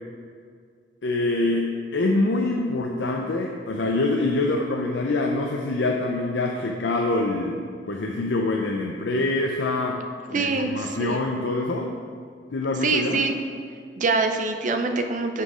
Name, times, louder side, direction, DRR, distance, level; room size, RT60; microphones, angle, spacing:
voice 1, 1.0-10.0 10.3-12.0 12.5-13.3, left 2 dB, 80° left, 1 dB, 0.5 m, -25 dB
voice 2, 10.3-11.2 12.8-13.4 14.0-15.4, right 3 dB, 45° right, 6 dB, 0.5 m, -24 dB
6.1 x 5.6 x 5.0 m, 2.1 s
head